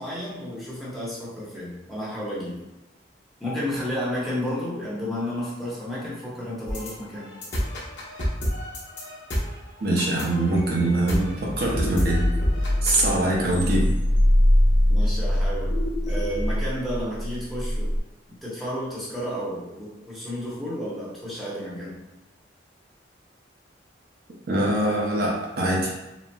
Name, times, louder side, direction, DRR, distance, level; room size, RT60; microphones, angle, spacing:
voice 1, 0.0-2.6 3.4-7.3 14.9-15.7 16.1-17.9 18.4-22.0, equal, ahead, -9 dB, 0.9 m, -32 dB
sound 1, 6.7-13.1, equal, 65° left, 0.8 m, -30 dB
voice 2, 9.8-12.3 12.8-13.9 24.5-25.9, right 1 dB, 55° right, -3 dB, 0.6 m, -23 dB
sound 2, 10.2-18.0, left 1 dB, 25° left, 1.4 m, -23 dB
4.0 x 2.0 x 2.2 m, 1.0 s
head